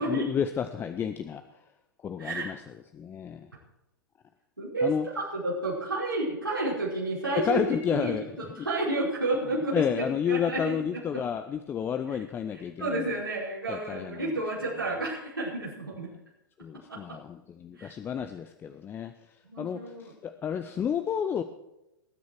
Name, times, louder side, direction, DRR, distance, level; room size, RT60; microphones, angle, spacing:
voice 1, 0.0-1.4 2.0-2.6 2.9-3.5 4.8-5.1 7.3-8.2 8.6-8.7 9.7-13.2 13.7-14.3 16.6-19.1 19.6-21.4, left 8 dB, 20° left, 9 dB, 0.7 m, -31 dB
voice 2, 4.6-7.6 7.9-10.8 11.1-11.2 12.8-16.1 16.9-17.2 17.8-17.9 19.5-20.1, right 2 dB, 85° right, -7 dB, 5.0 m, -31 dB
20.0 x 9.5 x 4.6 m, 0.90 s
figure-of-eight pair, 100°, 11 cm